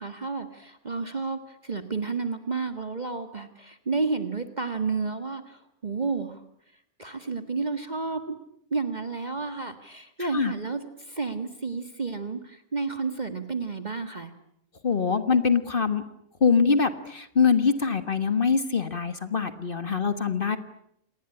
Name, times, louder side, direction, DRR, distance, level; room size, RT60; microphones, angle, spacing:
voice 1, 0.0-6.4 7.0-8.3 8.7-14.3, right 4 dB, 30° right, 9 dB, 1.8 m, -31 dB
voice 2, 14.8-16.0 16.4-20.6, left 5 dB, 40° left, 11 dB, 1.6 m, -23 dB
27.5 x 20.0 x 9.9 m, 0.75 s
omnidirectional pair, 1.5 m